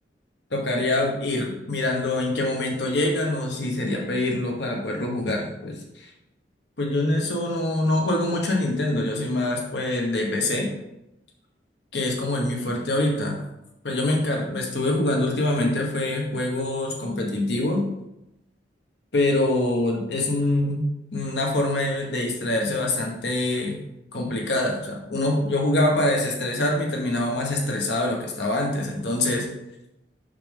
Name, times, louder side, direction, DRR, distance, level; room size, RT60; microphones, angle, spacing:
voice 1, 0.5-6.1 6.8-10.7 11.9-13.4 13.8-17.8 19.1-23.8 24.1-29.4, left 1 dB, 75° left, 0 dB, 1.4 m, -25 dB
6.3 x 5.7 x 3.6 m, 0.87 s
head